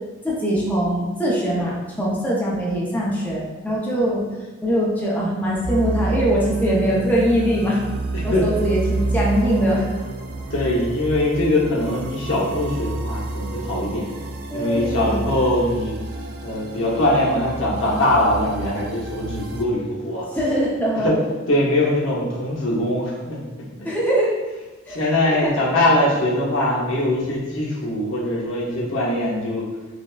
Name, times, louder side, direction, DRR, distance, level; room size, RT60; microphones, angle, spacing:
voice 1, 0.2-4.3 4.6-7.8 8.2-9.9 14.5-15.2 20.3-21.1 23.8-24.3 24.9-25.6, equal, 10° left, -6 dB, 0.5 m, -22 dB
sound 1, 5.6-19.6, right 2 dB, 55° right, 0.3 m, -29 dB
voice 2, 8.1-8.6 10.5-14.1 14.5-15.9 16.4-20.3 20.9-21.2 21.5-23.4 24.9-29.6, left 1 dB, 80° left, -4 dB, 0.8 m, -22 dB
4.8 x 2.1 x 2.3 m, 1.2 s
head